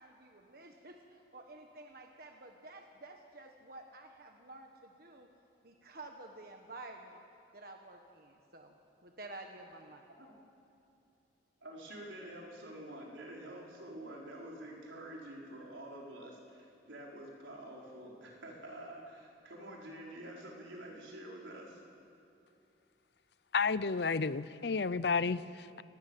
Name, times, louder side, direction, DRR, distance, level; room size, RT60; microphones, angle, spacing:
voice 1, 0.0-5.3 5.6-7.2 7.5-8.7 9.0-10.1, right 2 dB, 50° right, 3 dB, 1.5 m, -51 dB
voice 2, 11.6-21.8, right 1 dB, 85° right, -2 dB, 5.2 m, -48 dB
voice 3, 23.5-25.8, left 4 dB, 60° left, 16 dB, 0.6 m, -32 dB
29.0 x 19.0 x 7.6 m, 2.8 s
head